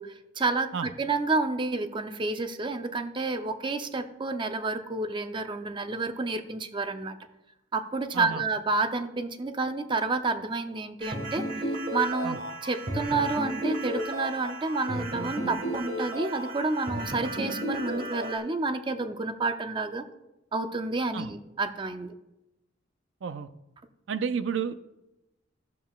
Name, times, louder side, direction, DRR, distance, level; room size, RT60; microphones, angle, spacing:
voice 1, 0.0-7.2 7.7-11.4 11.9-20.0 20.5-22.1, right 3 dB, 25° right, 8 dB, 0.5 m, -30 dB
sound 1, 11.0-18.4, right 1 dB, 50° right, 1.4 m, -33 dB
voice 2, 24.1-24.7, right 6 dB, 85° right, 12 dB, 0.4 m, -30 dB
13.5 x 7.1 x 2.4 m, 0.93 s
head